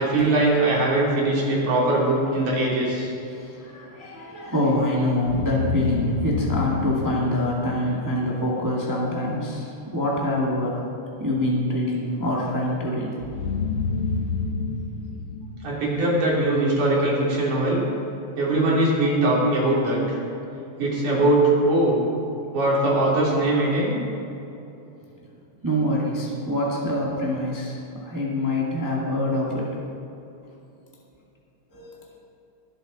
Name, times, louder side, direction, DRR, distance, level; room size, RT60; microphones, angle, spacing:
voice 1, 0.0-3.1 15.6-17.8 18.4-20.2 20.8-22.0 22.5-24.0, right 2 dB, 75° right, -5 dB, 4.5 m, -21 dB
voice 2, 3.3-10.8 11.2-13.2 25.6-27.8 28.0-29.7 31.7-32.2, left 1 dB, 10° right, -4 dB, 1.2 m, -25 dB
sound 1, 5.3-8.2 13.2-16.4, left 4 dB, 65° left, 1.8 m, -29 dB
21.5 x 8.1 x 4.1 m, 2.8 s
omnidirectional pair, 3.6 m